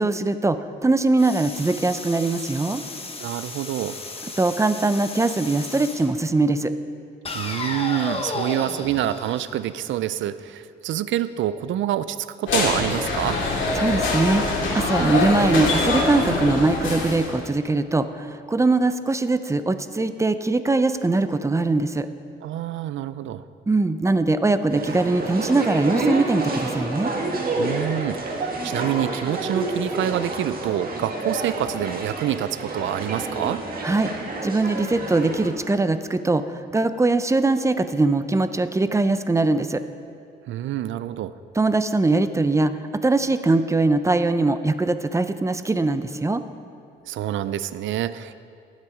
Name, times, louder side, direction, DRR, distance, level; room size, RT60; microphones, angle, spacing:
voice 1, 0.0-2.8 4.4-6.7 13.8-14.4 14.7-22.1 23.7-27.1 33.8-34.1 34.4-39.8 41.6-46.4, right 2 dB, 15° right, 11 dB, 0.6 m, -21 dB
sound 1, 1.2-6.1 7.3-10.2, left 3 dB, 30° left, 1.2 m, -34 dB
voice 2, 3.2-4.0 7.3-13.4 22.4-23.4 27.6-33.6 40.5-41.3 47.1-48.4, right 12 dB, 75° right, 14 dB, 0.5 m, -27 dB
sound 2, 12.5-17.5, left 2 dB, 75° left, 2.3 m, -24 dB
sound 3, 24.7-35.5, right 2 dB, 45° right, 1.9 m, -29 dB
18.0 x 7.4 x 5.0 m, 2.4 s
cardioid pair, 90°, 20 cm